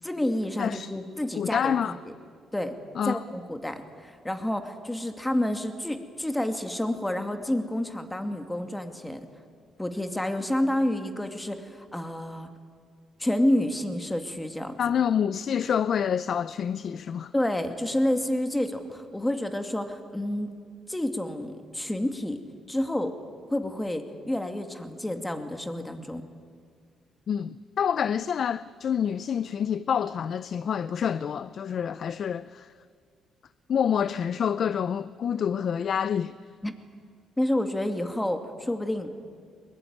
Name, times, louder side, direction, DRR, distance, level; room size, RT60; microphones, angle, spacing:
voice 1, 0.0-1.9 2.5-2.8 3.0-9.3 9.8-12.5 13.2-14.8 17.3-20.5 20.9-22.4 22.7-23.2 23.5-26.2 36.6-36.7 37.4-39.1, left 1 dB, 10° left, 2.4 m, -29 dB
voice 2, 0.6-0.9 1.4-2.0 3.0-3.2 14.8-17.3 27.3-32.7 33.7-36.4, left 8 dB, 60° left, 0.5 m, -27 dB
21.5 x 21.5 x 9.6 m
cardioid pair, 90°, 0 cm